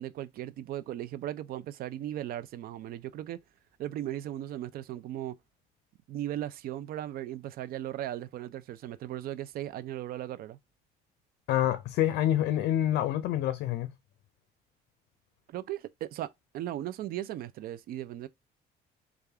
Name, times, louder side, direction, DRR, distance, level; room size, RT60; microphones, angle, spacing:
voice 1, 0.0-3.4 3.8-5.4 6.1-10.6 15.5-18.3, right 12 dB, 60° right, 0.4 m, -37 dB
voice 2, 11.5-13.9, left 12 dB, 80° left, 0.5 m, -27 dB
3.3 x 2.4 x 3.3 m
cardioid pair, 110°, 17 cm